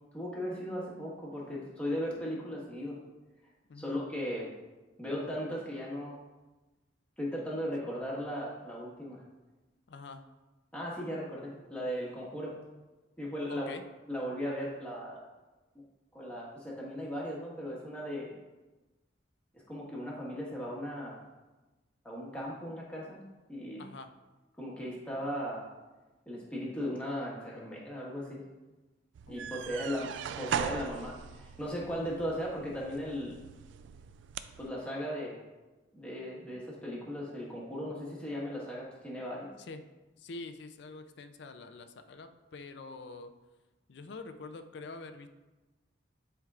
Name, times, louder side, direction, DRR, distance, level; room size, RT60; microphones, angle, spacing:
voice 1, 0.1-3.0 3.8-4.5 5.0-6.2 7.2-9.2 10.7-12.5 13.2-13.7 14.1-15.2 16.1-18.3 19.7-21.2 22.0-23.2 23.5-23.8 24.6-25.7 26.3-28.4 29.3-33.4 34.6-35.4 35.9-39.5, equal, 5° left, -5 dB, 1.4 m, -37 dB
voice 2, 3.7-4.0 9.9-10.2 13.5-13.8 23.8-24.1 29.3-30.1 39.6-39.8 40.2-43.3 43.9-45.3, left 3 dB, 60° left, 8 dB, 0.4 m, -46 dB
sound 1, 29.1-34.7, right 7 dB, 70° right, 0.3 m, -39 dB
10.5 x 4.5 x 2.4 m, 1.1 s
head